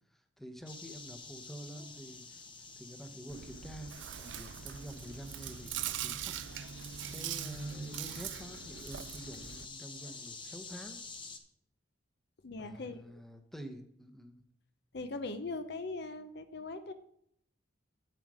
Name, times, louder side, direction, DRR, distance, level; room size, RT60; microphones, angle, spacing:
voice 1, 0.1-2.5 2.8-6.3 6.7-11.0 12.6-14.5, equal, ahead, 6 dB, 0.9 m, -48 dB
sound 1, 0.7-11.4, left 4 dB, 25° left, 0.9 m, -49 dB
Chewing mastication, 3.3-9.6, right 10 dB, 70° right, 0.5 m, -42 dB
voice 2, 12.4-13.2 14.9-16.9, left 3 dB, 60° left, 10 dB, 0.7 m, -40 dB
8.9 x 7.7 x 4.9 m, 0.70 s
head